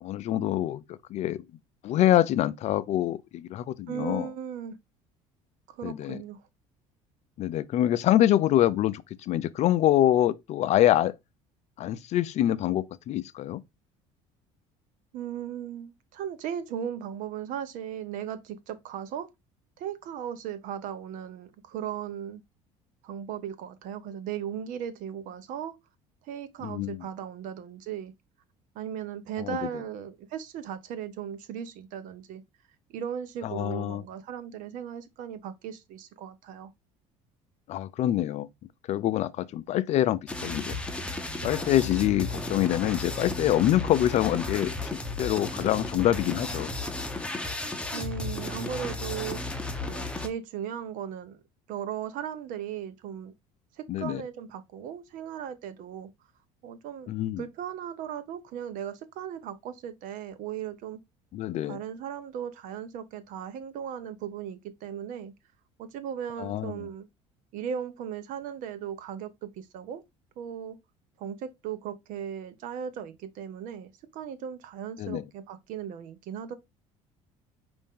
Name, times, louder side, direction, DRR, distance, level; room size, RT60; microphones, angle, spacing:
voice 1, 0.0-1.4 1.8-4.3 5.8-6.2 7.4-11.1 11.8-13.6 26.6-27.0 29.4-29.6 33.4-34.0 37.7-38.5 38.9-40.7 41.4-46.7 53.9-54.2 57.1-57.4 61.3-61.8 66.4-66.7 75.0-75.2, left 12 dB, 55° left, 0.4 m, -25 dB
voice 2, 3.9-4.8 5.7-6.4 15.1-19.3 19.8-22.4 23.0-25.8 26.2-28.1 28.7-32.4 32.9-36.7 47.9-49.4 49.9-51.4 51.7-53.3 53.8-56.1 56.6-57.1 57.4-61.0 61.6-65.3 65.8-67.1 67.5-70.0 70.4-70.8 71.2-76.5, right 9 dB, 65° right, 0.8 m, -37 dB
sound 1, 40.3-50.3, left 2 dB, 10° left, 0.8 m, -34 dB
5.3 x 2.6 x 3.6 m
supercardioid pair, 95°, 14 cm